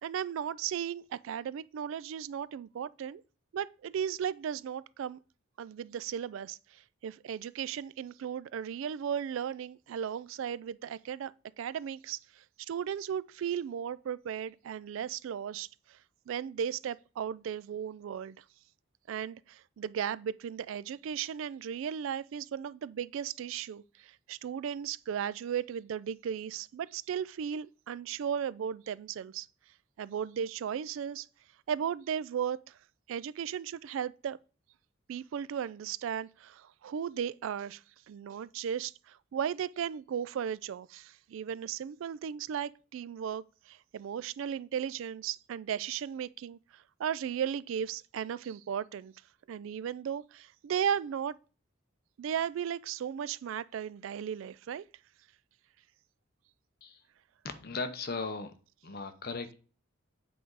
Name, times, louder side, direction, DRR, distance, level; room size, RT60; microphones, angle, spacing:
voice 1, 0.0-3.2 3.5-5.2 5.6-16.0 16.3-18.4 19.1-29.5 30.0-31.3 31.7-32.8 33.1-34.4 35.1-49.1 49.5-51.4 52.2-54.8, right 8 dB, 70° right, 0.3 m, -36 dB
voice 2, 57.4-58.5 58.8-59.5, left 3 dB, 45° left, 0.8 m, -37 dB
7.9 x 3.9 x 4.7 m
head